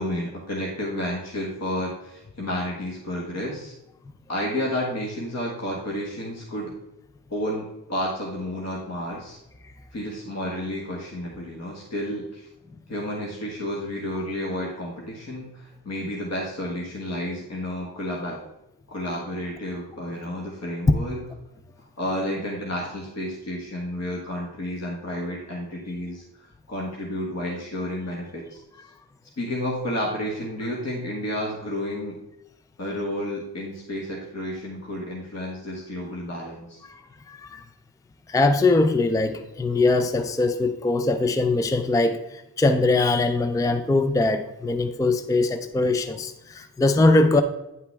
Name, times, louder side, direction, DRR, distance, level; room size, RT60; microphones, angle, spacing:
voice 1, 0.0-3.7 4.3-6.7 7.3-9.4 9.9-12.5 12.9-18.4 18.9-21.2 22.0-28.6 29.4-32.2 32.8-36.8, left 1 dB, 45° left, -2 dB, 1.6 m, -31 dB
voice 2, 37.3-37.6 38.3-47.4, left 2 dB, 10° left, 9 dB, 0.4 m, -22 dB
9.4 x 5.6 x 3.4 m, 0.91 s
cardioid pair, 90°, 38 cm